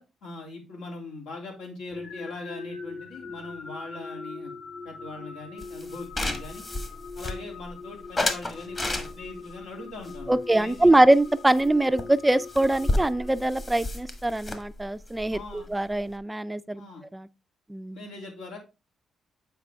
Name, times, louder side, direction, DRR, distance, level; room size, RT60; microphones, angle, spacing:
voice 1, 0.0-4.5 4.8-6.6 7.2-11.0 15.3-15.7 16.8-17.0 17.9-18.6, left 2 dB, 90° left, 2.8 m, -41 dB
sound 1, 1.9-13.9, left 4 dB, 60° left, 1.5 m, -42 dB
sound 2, 5.6-7.7 8.2-9.5 10.0-11.3 11.6-11.7 12.0-12.1 12.3-16.2, left 2 dB, 30° left, 1.3 m, -32 dB
voice 2, 10.3-16.9 17.1-17.3 17.7-18.0, right 1 dB, 10° right, 0.3 m, -23 dB
8.1 x 4.6 x 3.4 m
cardioid pair, 90°, 0 cm